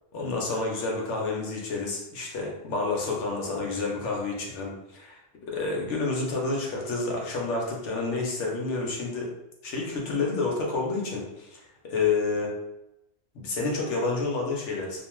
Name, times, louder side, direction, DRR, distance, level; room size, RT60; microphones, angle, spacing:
voice 1, 0.1-5.2 5.5-9.3 9.6-12.5 13.3-15.0, left 3 dB, 75° left, -2 dB, 1.0 m, -29 dB
2.4 x 2.3 x 3.0 m, 0.90 s
omnidirectional pair, 1.2 m